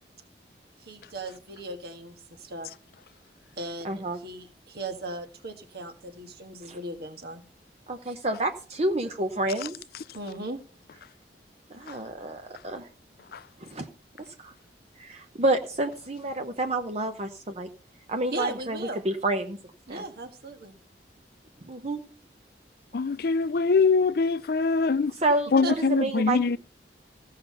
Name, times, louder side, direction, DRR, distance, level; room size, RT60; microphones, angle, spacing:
voice 1, 0.8-2.7 3.6-7.4 8.1-8.2 10.1-10.6 18.3-19.0 19.9-20.7 25.6-25.7, right 2 dB, 60° right, 1.6 m, -37 dB
voice 2, 3.8-4.2 6.7-6.8 7.9-9.7 11.7-12.9 13.6-13.9 14.4-14.5 15.0-17.7 18.1-18.8 19.0-19.6 19.9-20.0 21.6-22.0 25.1-26.4, right 2 dB, 35° right, 0.8 m, -29 dB
voice 3, 22.9-25.1 25.5-26.6, left 4 dB, 55° left, 0.4 m, -23 dB
15.0 x 5.7 x 5.6 m
head